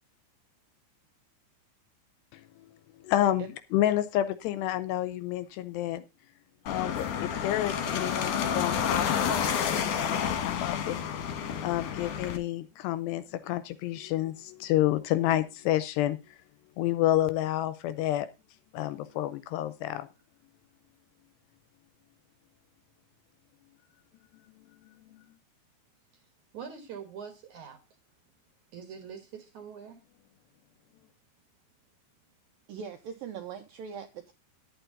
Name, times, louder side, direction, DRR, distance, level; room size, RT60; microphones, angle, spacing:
voice 1, 2.3-2.7 3.0-6.0 6.7-11.0 11.6-16.4 16.8-18.3 18.7-20.1 24.5-25.3, left 13 dB, 80° left, 2.6 m, -30 dB
sound 1, 6.7-12.4, left 8 dB, 60° left, 2.3 m, -30 dB
voice 2, 26.5-27.8 28.7-30.0, right 7 dB, 60° right, 2.2 m, -43 dB
voice 3, 32.7-34.3, right 7 dB, 80° right, 2.1 m, -40 dB
11.0 x 9.1 x 3.9 m
omnidirectional pair, 5.2 m